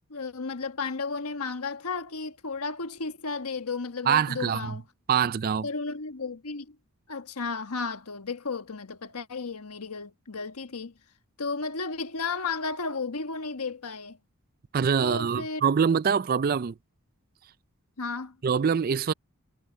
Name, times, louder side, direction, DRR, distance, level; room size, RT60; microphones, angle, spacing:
voice 1, 0.1-4.8 5.6-6.8 7.1-10.9 11.4-14.2 15.0-15.6 18.0-18.4, left 4 dB, 85° left, 1.3 m, -33 dB
voice 2, 4.1-4.8 5.1-5.7 14.7-16.7 18.4-19.1, right 7 dB, 40° right, 0.4 m, -24 dB
head